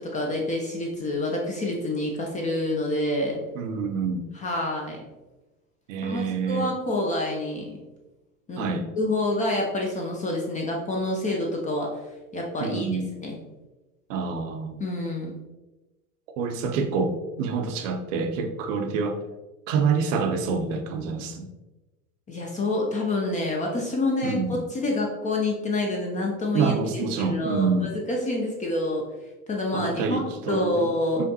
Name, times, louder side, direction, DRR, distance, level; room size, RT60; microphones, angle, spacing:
voice 1, 0.0-3.4 4.3-5.0 6.0-7.8 8.5-8.7 9.0-11.9 12.3-12.9 13.2-13.4 14.8-15.3 22.3-29.1 29.5-30.2 30.5-31.2, left 2 dB, 20° left, 0 dB, 0.5 m, -27 dB
voice 2, 3.5-4.3 5.9-6.7 8.6-8.8 12.6-13.1 14.1-14.8 16.4-19.2 19.7-21.5 24.2-24.6 26.5-27.9 29.7-30.9 31.2-31.3, right 5 dB, 60° right, 6 dB, 0.7 m, -27 dB
5.0 x 2.5 x 2.7 m, 1.1 s
hypercardioid pair, 95°, 43 cm